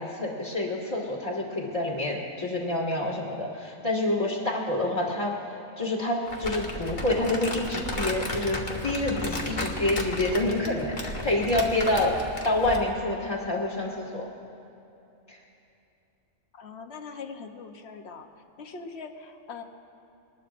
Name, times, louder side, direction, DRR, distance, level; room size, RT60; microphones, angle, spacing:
voice 1, 0.0-5.3 5.8-12.1 12.4-14.3 15.3-15.4, left 1 dB, 20° left, -7 dB, 1.6 m, -27 dB
Crumpling crinkling, 6.3-12.9, left 1 dB, 35° left, 1.4 m, -34 dB
voice 2, 16.5-18.3 18.6-19.6, left 5 dB, 55° left, 5 dB, 1.1 m, -41 dB
23.5 x 20.0 x 2.5 m, 2.8 s
omnidirectional pair, 1.4 m